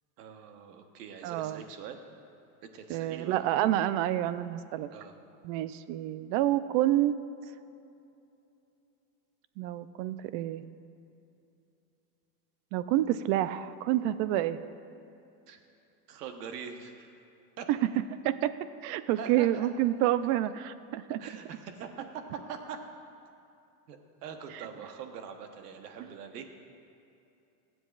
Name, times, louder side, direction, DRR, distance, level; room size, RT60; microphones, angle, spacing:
voice 1, 0.2-2.0 2.6-3.4 4.9-5.2 15.5-15.6 16.1-17.1 17.6-17.7 19.2-19.7 21.2-22.8 23.9-26.4, right 7 dB, 90° right, 6 dB, 1.2 m, -43 dB
voice 2, 1.2-1.6 2.9-4.9 5.4-7.2 9.6-10.6 12.7-14.6 17.7-17.8 18.2-18.5 18.8-21.2 24.5-24.7 26.0-26.1, right 13 dB, 55° right, 13 dB, 0.5 m, -28 dB
23.0 x 7.8 x 2.4 m, 2.7 s
supercardioid pair, 130°, 46 cm